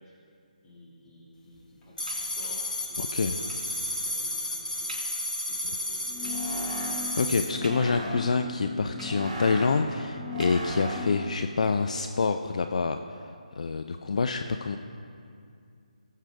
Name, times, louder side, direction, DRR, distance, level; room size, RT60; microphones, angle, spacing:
voice 1, 0.6-6.7, left 1 dB, 15° left, -8 dB, 2.6 m, -52 dB
sound 1, 2.0-7.5, left 1 dB, 85° left, 1.8 m, -32 dB
sound 2, 2.1-2.7 3.5-3.8 4.3-4.4 4.9-5.3 6.2-6.6 7.6-8.3 9.0-9.6 10.4-11.1 11.9-12.0 12.3-12.4, right 2 dB, 70° right, 2.9 m, -47 dB
voice 2, 3.0-3.4 7.2-13.2 13.6-14.8, left 4 dB, 55° left, 7 dB, 0.5 m, -27 dB
sound 3, 6.0-11.3, left 1 dB, 25° right, 2.6 m, -36 dB
19.0 x 7.4 x 3.6 m, 2.4 s
figure-of-eight pair, 155°, 4 cm